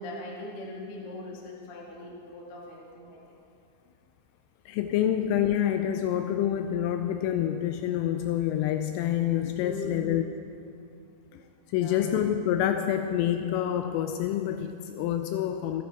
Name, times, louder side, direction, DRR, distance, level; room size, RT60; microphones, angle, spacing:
voice 1, 0.0-3.4 9.6-10.0 11.8-12.1, left 2 dB, 70° left, -3 dB, 1.3 m, -40 dB
voice 2, 4.7-10.3 11.3-11.4 11.7-15.8, left 10 dB, 85° left, 7 dB, 3.0 m, -27 dB
24.5 x 11.5 x 3.5 m, 2.4 s
omnidirectional pair, 5.9 m